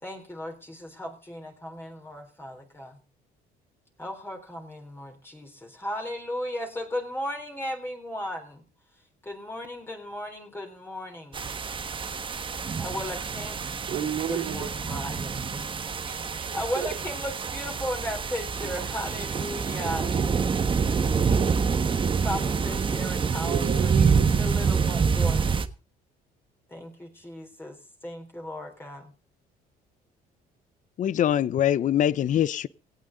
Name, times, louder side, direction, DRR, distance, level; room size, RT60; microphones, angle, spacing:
voice 1, 0.0-3.0 4.0-8.6 9.2-11.6 12.8-13.6 14.3-15.7 16.5-20.2 22.2-23.9 24.4-25.6 26.7-27.8 28.0-29.1, equal, 15° left, 3.9 m, -36 dB
sound 1, 11.3-25.7, right 5 dB, 30° right, 1.4 m, -26 dB
voice 2, 13.9-14.7 16.0-16.9 23.4-24.4, right 9 dB, 65° right, 3.5 m, -33 dB
voice 3, 31.0-32.7, left 10 dB, 50° left, 0.7 m, -23 dB
18.0 x 15.5 x 4.0 m
cardioid pair, 110°, 17 cm